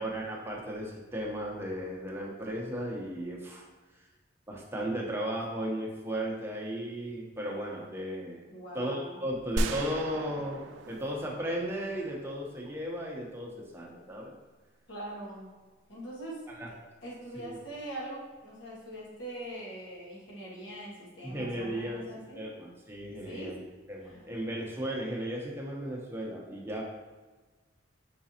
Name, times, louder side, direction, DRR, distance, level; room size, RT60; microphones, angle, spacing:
voice 1, 0.0-3.7 4.5-8.5 8.7-10.6 10.9-14.3 16.6-16.7 17.4-17.6 21.2-23.6 23.9-26.8, right 1 dB, 15° right, -3 dB, 0.8 m, -35 dB
voice 2, 8.5-9.2 14.9-15.5 15.9-22.4 23.2-23.6 24.0-24.2, right 1 dB, 80° left, -5 dB, 1.5 m, -43 dB
sound 1, 9.6-12.5, right 2 dB, 75° right, 0.3 m, -36 dB
4.9 x 3.8 x 2.8 m, 1.3 s
head